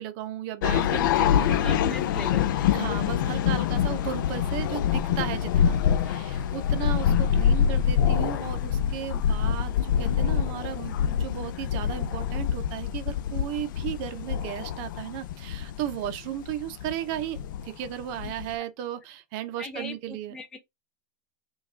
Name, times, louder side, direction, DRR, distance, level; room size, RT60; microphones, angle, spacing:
voice 1, 0.0-2.0 2.7-5.8 6.0-17.4 17.6-20.4, right 11 dB, 40° right, 0.6 m, -35 dB
sound 1, 0.6-18.5, left 8 dB, 75° left, 0.5 m, -25 dB
voice 2, 1.6-2.7 19.6-20.6, left 2 dB, 5° left, 0.4 m, -39 dB
5.6 x 2.3 x 3.5 m
supercardioid pair, 170°, 11 cm